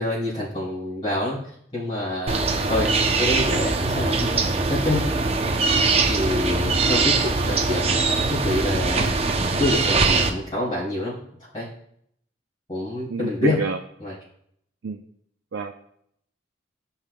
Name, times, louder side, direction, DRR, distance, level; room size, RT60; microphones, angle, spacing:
voice 1, 0.0-1.4 1.7-2.4 2.7-2.9 3.2-5.1 6.1-9.1 9.6-11.2 11.5-11.7 12.7-13.6 14.0-14.2, left 1 dB, 25° left, -12 dB, 3.5 m, -27 dB
sound 1, 2.3-10.3, right 3 dB, 30° right, 0.6 m, -22 dB
voice 2, 13.1-13.8 14.8-15.0 15.5-15.7, right 4 dB, 85° right, 3 dB, 0.5 m, -28 dB
15.0 x 5.7 x 2.2 m, 0.70 s
head